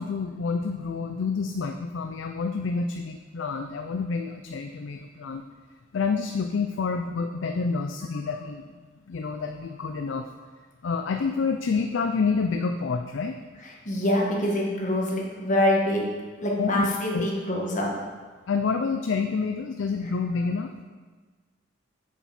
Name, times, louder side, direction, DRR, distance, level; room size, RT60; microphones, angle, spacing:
voice 1, 0.0-5.4 5.9-8.6 9.1-10.3 10.8-13.4 16.6-17.3 18.5-20.8, left 4 dB, 80° left, 6 dB, 0.4 m, -28 dB
voice 2, 13.8-16.1 16.4-17.9, left 1 dB, 40° left, -2 dB, 1.5 m, -25 dB
7.3 x 7.1 x 4.3 m, 1.4 s
head